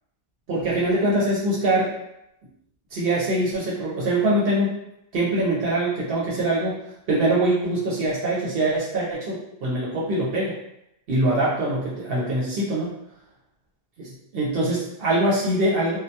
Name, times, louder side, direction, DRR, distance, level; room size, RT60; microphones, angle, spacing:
voice 1, 0.5-1.9 2.9-4.7 5.1-6.7 7.1-10.5 11.1-12.9 14.0-16.0, right 1 dB, 70° right, -6 dB, 0.8 m, -23 dB
2.2 x 2.2 x 2.7 m, 0.83 s
omnidirectional pair, 1.0 m